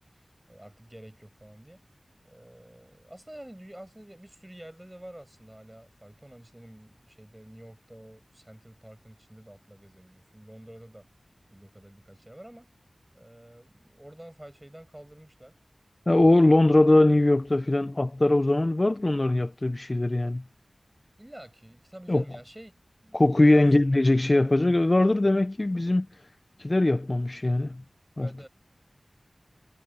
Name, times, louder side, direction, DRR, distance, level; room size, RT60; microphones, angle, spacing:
voice 1, 0.5-1.8 2.2-11.1 11.5-12.7 13.1-15.6 21.2-22.7 23.0-23.8 28.2-28.5, right 1 dB, 15° right, 7.4 m, -48 dB
voice 2, 16.1-20.4 22.1-22.2 23.1-26.1 26.6-27.8 28.2-28.3, left 2 dB, 35° left, 0.4 m, -21 dB
wide cardioid pair, 65°, 0 cm